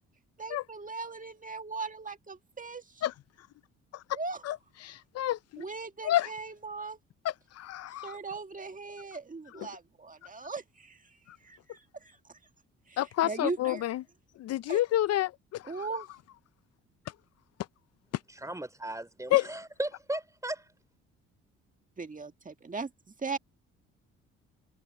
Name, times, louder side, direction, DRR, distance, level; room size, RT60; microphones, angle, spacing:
voice 1, 0.4-3.0 4.1-4.4 5.6-7.0 8.0-11.0 11.4-12.2 12.9-13.8 14.7-14.8 15.6-16.1 22.0-22.9 23.2-23.4, right 4 dB, 25° right, 1.9 m, -39 dB
voice 2, 4.8-5.6 6.0-6.3 7.2-8.2 9.6-9.7 13.0-14.0 14.4-15.7 19.3-19.4, left 14 dB, 60° left, 0.5 m, -29 dB
voice 3, 18.3-20.7, right 1 dB, 10° right, 3.4 m, -36 dB
supercardioid pair, 60°, 30 cm